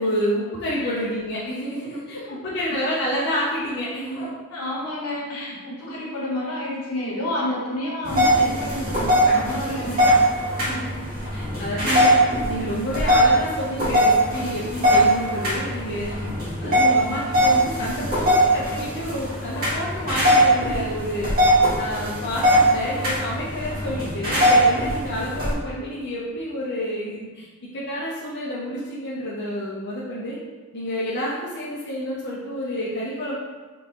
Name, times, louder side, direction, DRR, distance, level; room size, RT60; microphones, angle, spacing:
voice 1, 0.0-4.3 5.9-6.0 9.3-10.0 10.6-11.0 11.3-16.3 16.6-21.4 21.7-30.4 30.7-33.4, equal, 50° left, -7 dB, 0.6 m, -29 dB
voice 2, 4.2-10.1 11.2-11.3 21.2-21.3, left 1 dB, 80° left, -5 dB, 1.2 m, -30 dB
sound 1, 8.0-25.5, equal, 40° right, 1.5 m, -20 dB
3.7 x 3.5 x 2.9 m, 1.3 s
head